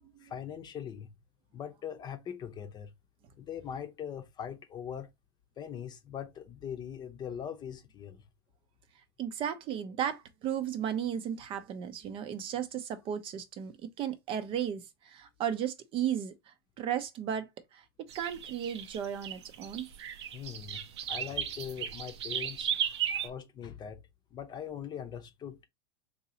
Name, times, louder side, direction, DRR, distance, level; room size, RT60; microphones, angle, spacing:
voice 1, 0.2-1.1 1.5-2.9 3.4-5.1 5.6-8.2 20.3-24.0 24.3-25.7, left 8 dB, 30° left, 0.8 m, -41 dB
voice 2, 9.2-17.8 18.1-19.9, right 9 dB, 40° right, 0.6 m, -35 dB
sound 1, 18.1-23.3, right 8 dB, 75° right, 0.6 m, -35 dB
3.8 x 2.8 x 2.8 m
hypercardioid pair, 100°, 14 cm